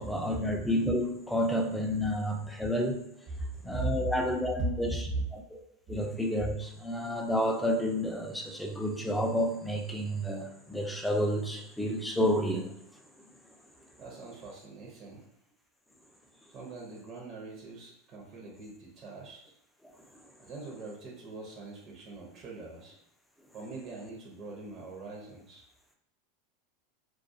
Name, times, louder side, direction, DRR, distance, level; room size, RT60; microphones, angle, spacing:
voice 1, 0.0-3.0 3.6-4.9 5.3-5.6 5.9-12.8, equal, 5° left, 1 dB, 0.4 m, -30 dB
voice 2, 3.5-4.1 4.6-5.3 14.0-15.2 16.5-19.4 20.4-22.9 23.5-25.6, right 2 dB, 40° right, -1 dB, 0.7 m, -40 dB
2.3 x 2.2 x 2.5 m, 0.75 s
supercardioid pair, 125°, 0 cm